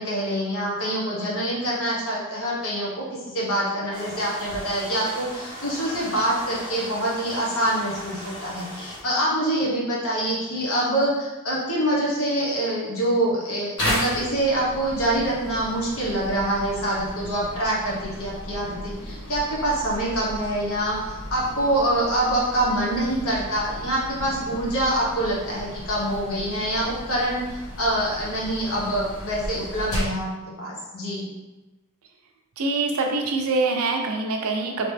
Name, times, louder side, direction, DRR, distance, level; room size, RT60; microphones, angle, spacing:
voice 1, 0.0-30.3 30.6-31.3, right 1 dB, 65° left, -5 dB, 1.1 m, -25 dB
sound 1, 3.9-9.0, equal, 20° left, 0.9 m, -38 dB
sound 2, 13.8-30.3, equal, 85° left, 1.4 m, -35 dB
voice 2, 32.6-34.9, right 3 dB, 70° right, 2 dB, 0.5 m, -24 dB
2.9 x 2.9 x 3.3 m, 1.1 s
head